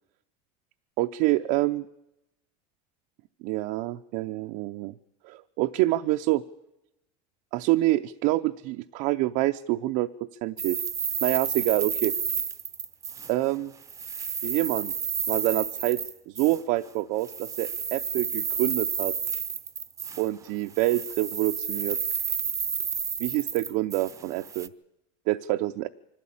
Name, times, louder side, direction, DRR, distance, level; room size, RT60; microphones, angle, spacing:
voice 1, 1.0-1.9 3.4-4.9 5.2-6.4 7.5-10.8 11.2-12.1 13.3-13.7 14.4-14.9 15.3-16.0 16.3-19.1 20.2-22.0 23.2-24.7 25.3-25.9, right 17 dB, 60° right, 7 dB, 0.6 m, -26 dB
sound 1, 10.6-13.6 13.8-16.6 17.2-20.5 20.7-24.7, right 6 dB, 20° right, 0.8 m, -31 dB
25.0 x 12.5 x 8.7 m, 0.92 s
supercardioid pair, 135°, 17 cm